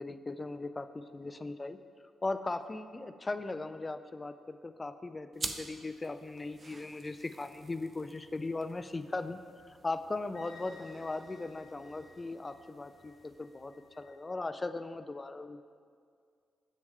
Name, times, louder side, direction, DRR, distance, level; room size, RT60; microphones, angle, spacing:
voice 1, 0.0-1.8 2.2-9.4 9.6-15.6, left 2 dB, 25° left, 10 dB, 0.3 m, -38 dB
sound 1, 5.3-14.3, right 3 dB, 35° right, 0.5 m, -48 dB
Wind instrument woodwind instrument, 10.3-14.2, left 4 dB, 75° left, 1.1 m, -58 dB
7.5 x 6.3 x 3.6 m, 2.2 s
cardioid pair, 95°, 0 cm